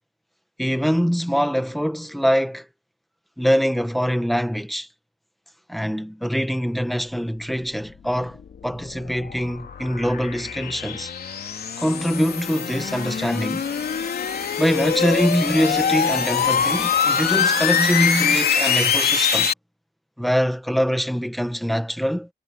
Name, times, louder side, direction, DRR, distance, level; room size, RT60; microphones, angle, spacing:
voice 1, 0.6-2.7 3.4-4.9 5.7-11.1 11.8-13.7 14.6-19.5 20.2-22.3, equal, ahead, 1.8 m, -23 dB
sound 1, 8.2-19.5, left 7 dB, 65° left, 3.5 m, -23 dB
cardioid pair, 105°, 17 cm